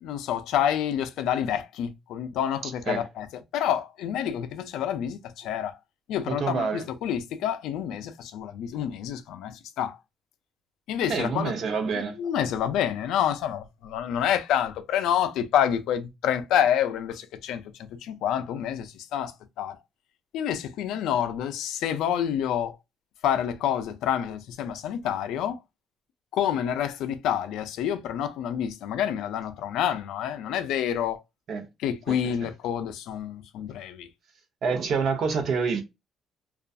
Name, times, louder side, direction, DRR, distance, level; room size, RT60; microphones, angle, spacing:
voice 1, 0.0-3.3 3.5-5.8 6.1-10.0 10.9-11.5 12.2-17.6 18.0-19.8 20.3-22.8 23.2-25.6 26.3-31.2 31.8-34.1, left 9 dB, 80° left, 0.3 m, -28 dB
voice 2, 2.6-3.0 6.3-6.8 11.1-12.2 31.5-31.7 32.1-32.2 34.6-35.8, right 5 dB, 55° right, 0.6 m, -27 dB
2.5 x 2.3 x 2.3 m
cardioid pair, 130°, 0 cm